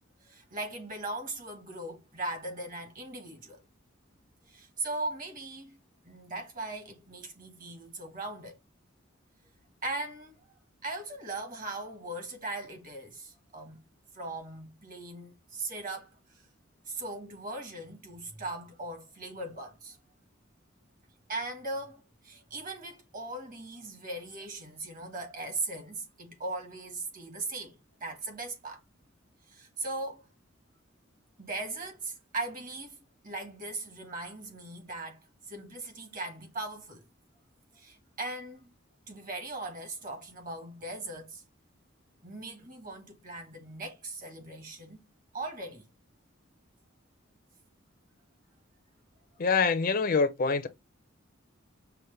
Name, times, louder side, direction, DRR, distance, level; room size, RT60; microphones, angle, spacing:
voice 1, 0.2-3.6 4.5-5.8 6.0-8.6 9.8-10.4 10.8-13.8 14.1-16.2 16.8-20.0 21.3-28.8 29.5-30.3 31.4-33.0 33.2-37.0 37.7-38.7 39.1-41.4 42.2-45.0 45.3-45.9, right 2 dB, 45° right, 1.5 m, -39 dB
voice 2, 49.4-50.7, left 4 dB, 45° left, 0.5 m, -25 dB
5.7 x 2.1 x 3.2 m
head